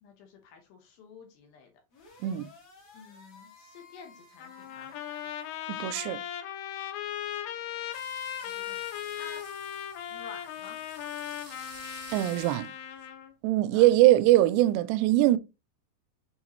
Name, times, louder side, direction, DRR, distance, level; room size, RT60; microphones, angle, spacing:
voice 1, 0.0-1.7 2.9-5.0 8.4-8.8 9.1-9.5 10.1-10.8 13.7-13.9, left 6 dB, 70° left, 2.8 m, -50 dB
sound 1, 1.9-5.7, left 4 dB, 45° left, 2.2 m, -55 dB
Trumpet, 4.4-13.3, left 10 dB, 85° left, 2.9 m, -38 dB
voice 2, 5.7-6.2 12.1-12.7 13.4-15.4, right 15 dB, 85° right, 2.7 m, -22 dB
sound 2, 7.9-13.1, right 3 dB, 35° right, 1.0 m, -51 dB
7.0 x 4.4 x 3.0 m
omnidirectional pair, 4.9 m